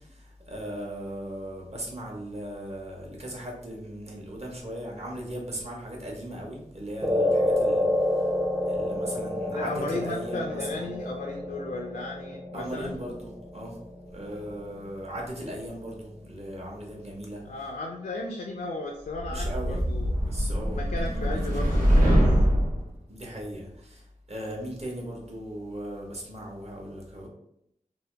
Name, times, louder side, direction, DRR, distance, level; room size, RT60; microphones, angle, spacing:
voice 1, 0.0-8.3 8.7-11.0 12.5-13.8 14.1-17.4 19.3-19.8 20.2-21.8 23.1-27.3, right 1 dB, 50° right, -1 dB, 1.0 m, -38 dB
sound 1, 7.0-15.5, left 1 dB, 10° right, 0.4 m, -29 dB
voice 2, 9.5-12.9 17.4-20.1 20.7-22.2, left 2 dB, 80° left, 0 dB, 0.4 m, -35 dB
sound 2, 19.1-22.8, equal, 85° right, 0.9 m, -23 dB
2.7 x 2.2 x 3.2 m, 0.77 s
wide cardioid pair, 55°, 14 cm